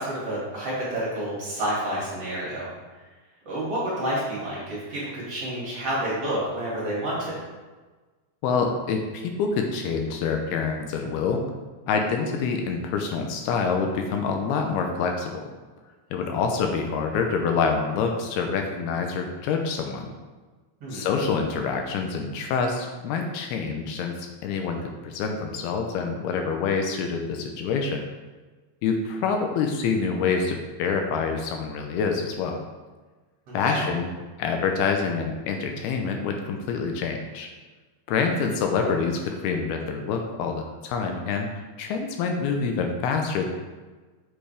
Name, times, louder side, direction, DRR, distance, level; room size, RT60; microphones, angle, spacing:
voice 1, 0.0-2.7 3.5-7.3 20.8-21.0 33.5-33.8, right 1 dB, 40° right, -6 dB, 2.8 m, -29 dB
voice 2, 8.4-11.4 11.9-15.4 16.1-20.1 20.9-28.0 28.8-32.6 33.5-34.1 34.4-37.5 38.1-43.5, left 5 dB, 80° left, 3 dB, 2.6 m, -26 dB
8.4 x 7.9 x 3.5 m, 1.3 s
omnidirectional pair, 4.7 m